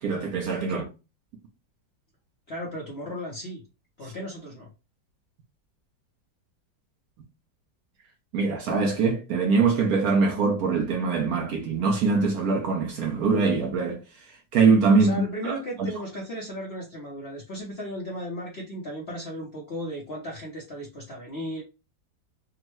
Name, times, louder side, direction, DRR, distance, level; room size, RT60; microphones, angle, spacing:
voice 1, 0.0-0.8 8.3-14.0 14.3-15.9, right 4 dB, 65° right, 1.0 m, -23 dB
voice 2, 2.5-3.6 4.0-4.7 15.0-21.6, equal, 55° left, 0.7 m, -35 dB
3.6 x 2.1 x 3.0 m
omnidirectional pair, 2.0 m